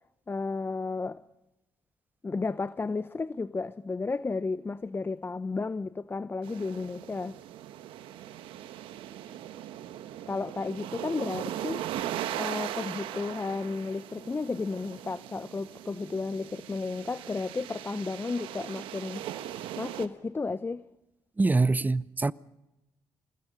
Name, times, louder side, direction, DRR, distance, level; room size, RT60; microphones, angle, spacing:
voice 1, 0.3-1.2 2.2-7.4 10.3-11.9 12.4-19.3 19.8-20.9, left 3 dB, 25° left, 0.7 m, -33 dB
sound 1, 6.4-20.1, right 12 dB, 75° right, 1.2 m, -39 dB
voice 2, 21.4-22.3, right 3 dB, 20° right, 0.7 m, -24 dB
27.5 x 20.5 x 5.4 m
hypercardioid pair, 55°, 9 cm